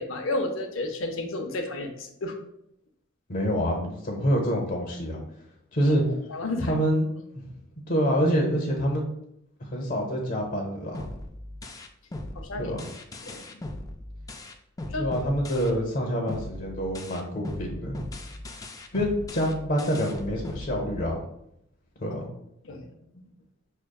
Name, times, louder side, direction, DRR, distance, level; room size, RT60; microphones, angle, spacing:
voice 1, 0.0-2.4 5.8-6.0 6.3-6.8 12.3-12.7 13.2-13.6 14.9-15.1 22.6-22.9, left 2 dB, 85° left, 4 dB, 0.6 m, -32 dB
voice 2, 3.3-5.2 5.7-6.0 6.6-7.1 7.3-7.4 7.9-9.0 9.6-11.0 12.6-12.8 15.0-18.0 18.9-21.2 22.0-22.2, equal, 50° left, 0 dB, 0.8 m, -26 dB
sound 1, 10.9-16.0 16.3-21.3, left 1 dB, 20° left, 0.3 m, -38 dB
6.4 x 2.2 x 2.3 m, 0.77 s
head